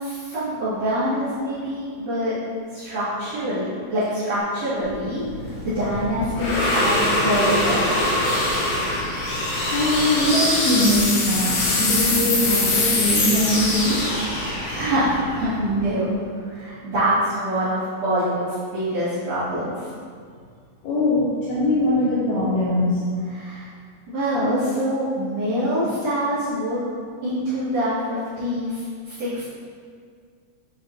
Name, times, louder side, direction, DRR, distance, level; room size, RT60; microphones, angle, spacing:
voice 1, 0.0-2.3 2.7-8.0 14.3-16.1 16.4-18.4 18.7-19.9 23.3-23.7 24.1-26.8 27.2-29.5, equal, 70° right, -15 dB, 1.5 m, -25 dB
sound 1, 4.9-16.1, left 2 dB, 70° left, 2.6 m, -23 dB
voice 2, 9.6-14.1 20.8-23.0, left 1 dB, 85° left, -9 dB, 2.2 m, -22 dB
7.8 x 4.6 x 3.0 m, 2.1 s
omnidirectional pair, 5.8 m